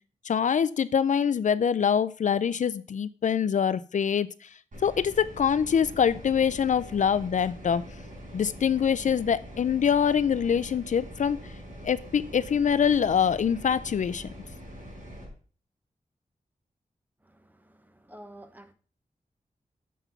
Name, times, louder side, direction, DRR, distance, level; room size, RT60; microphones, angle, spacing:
voice 1, 0.2-4.3 4.8-7.8 8.3-11.4 11.8-14.3, left 7 dB, 65° left, 0.4 m, -24 dB
sound 1, 4.7-15.3, equal, 70° right, 4.6 m, -43 dB
voice 2, 17.2-18.7, right 1 dB, 10° right, 1.0 m, -50 dB
7.2 x 5.9 x 5.7 m
wide cardioid pair, 100°, 14 cm